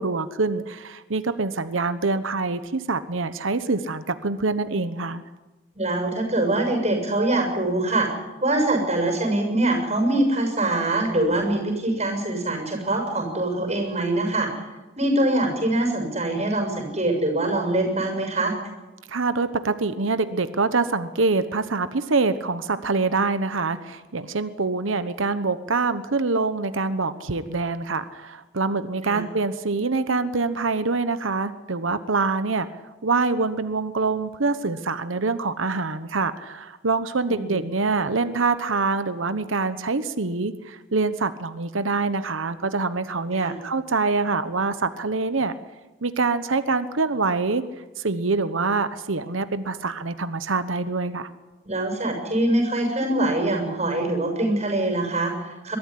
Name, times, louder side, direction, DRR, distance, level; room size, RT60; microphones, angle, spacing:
voice 1, 0.0-5.2 19.1-32.7 33.0-45.5 46.0-47.6 48.0-51.3, right 3 dB, 85° right, 11 dB, 1.1 m, -25 dB
voice 2, 5.7-8.1 8.4-14.5 15.0-18.5 29.0-29.2 37.3-37.6 43.4-43.5 51.6-55.8, right 1 dB, 30° right, 3 dB, 6.7 m, -23 dB
22.0 x 13.5 x 9.9 m, 1.1 s
head